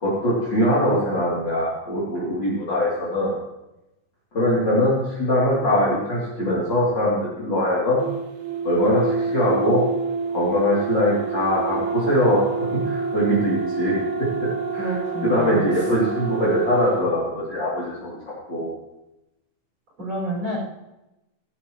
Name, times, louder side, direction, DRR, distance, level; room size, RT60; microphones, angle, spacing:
voice 1, 0.0-3.4 4.3-8.0 8.6-9.8 10.3-12.4 12.7-14.0 14.4-18.2 18.5-18.7, left 1 dB, 25° left, -7 dB, 3.2 m, -22 dB
sound 1, 8.0-17.1, right 5 dB, 60° right, 2.0 m, -28 dB
voice 2, 14.8-15.6 20.0-20.6, equal, 25° right, -6 dB, 6.2 m, -28 dB
18.0 x 12.0 x 3.2 m, 0.94 s
omnidirectional pair, 5.4 m